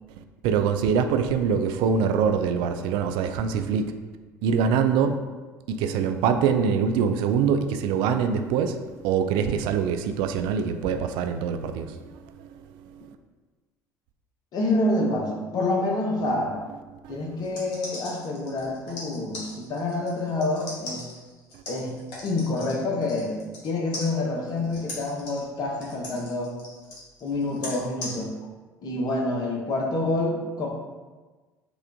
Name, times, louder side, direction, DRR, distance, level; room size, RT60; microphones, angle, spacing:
voice 1, 0.4-3.9 4.4-5.2 5.7-8.8 9.0-12.5 12.9-13.1 17.0-17.2, right 6 dB, 65° right, 7 dB, 0.4 m, -24 dB
voice 2, 14.5-16.6 17.1-21.0 21.7-21.9 22.2-23.4 23.6-26.5 27.2-28.3 28.8-30.7, left 2 dB, 45° left, 0 dB, 1.0 m, -27 dB
sound 1, 17.4-23.7 23.9-28.1, left 2 dB, 65° left, 1.5 m, -39 dB
4.9 x 2.5 x 3.5 m, 1.3 s
hypercardioid pair, 65°, 9 cm